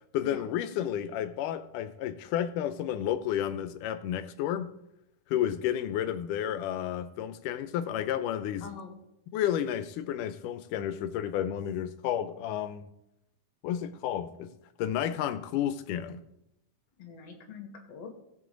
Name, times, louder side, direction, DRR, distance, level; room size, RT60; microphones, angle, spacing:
voice 1, 0.1-4.7 5.3-8.7 9.3-12.9 13.6-14.5 14.8-16.2, left 10 dB, 90° left, 2.3 m, -31 dB
voice 2, 8.6-9.0 17.0-18.1, left 6 dB, 55° left, 2.6 m, -45 dB
17.0 x 7.5 x 3.8 m
omnidirectional pair, 3.6 m